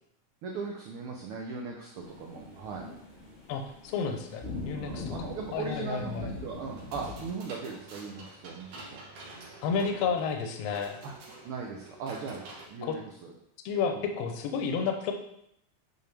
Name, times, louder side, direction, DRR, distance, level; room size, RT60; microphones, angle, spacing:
voice 1, 0.4-2.8 4.7-9.0 11.0-11.1 11.4-13.3 13.9-14.0, right 5 dB, 80° right, 0 dB, 1.2 m, -39 dB
sound 1, 2.0-7.3, left 3 dB, 40° left, 0.8 m, -42 dB
voice 2, 3.5-6.3 9.6-11.0 12.8-13.0 13.6-15.1, left 6 dB, 70° left, 5 dB, 1.7 m, -31 dB
sound 2, 6.7-12.7, right 2 dB, 60° right, 2.1 m, -48 dB
8.4 x 4.4 x 3.4 m, 0.75 s
omnidirectional pair, 3.4 m